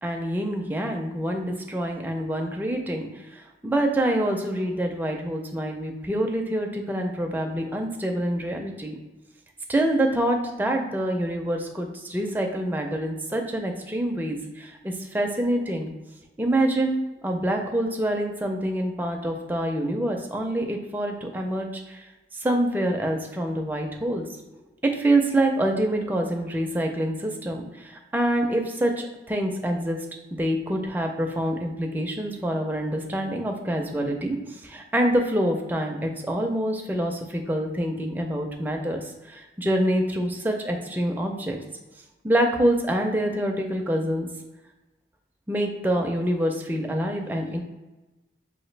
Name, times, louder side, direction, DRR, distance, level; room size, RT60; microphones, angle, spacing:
voice 1, 0.0-9.0 9.7-15.9 16.4-22.0 22.3-24.2 24.8-30.0 30.3-41.6 42.2-44.3 45.5-47.6, right 1 dB, 10° right, 2 dB, 0.4 m, -26 dB
4.8 x 2.5 x 3.2 m, 1.1 s
head